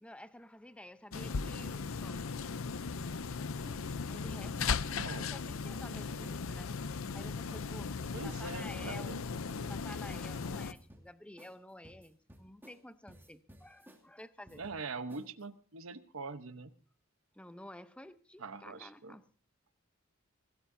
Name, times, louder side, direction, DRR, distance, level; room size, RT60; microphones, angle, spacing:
voice 1, 0.0-2.3 4.1-6.7 7.1-9.2 9.7-14.6 17.3-19.3, left 1 dB, 5° left, 0.8 m, -51 dB
sound 1, 1.1-10.7, left 5 dB, 80° left, 0.6 m, -37 dB
sound 2, 1.1-1.3 1.6-2.6 3.0-3.3 3.7-3.8 4.1-5.1 5.6-5.9 6.2-6.4 6.7-7.7 8.1-8.5 8.8-9.0 9.3-10.3 10.7-11.1 11.4-11.6 11.8-12.8 13.1-14.0 14.5-14.8 15.1-15.4, equal, 10° right, 2.6 m, -56 dB
voice 2, 4.6-5.3 8.1-9.2 14.6-16.7 18.4-19.2, right 3 dB, 80° right, 1.0 m, -43 dB
25.0 x 16.5 x 2.7 m
head